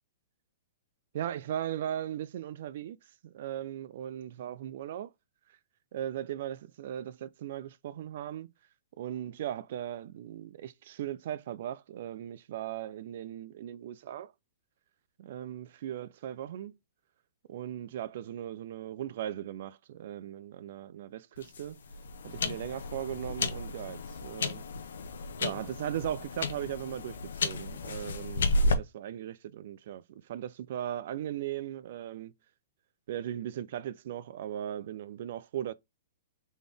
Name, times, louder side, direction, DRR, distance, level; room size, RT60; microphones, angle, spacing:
voice 1, 1.1-3.0 3.2-5.1 5.5-5.6 5.9-8.5 9.0-14.3 15.2-16.8 17.5-21.8 22.2-24.6 25.4-32.3 33.1-35.7, right 11 dB, 55° right, 0.4 m, -38 dB
sound 1, 21.4-28.7, left 2 dB, 85° left, 0.8 m, -33 dB
4.1 x 3.6 x 3.4 m
hypercardioid pair, 160°, 0 cm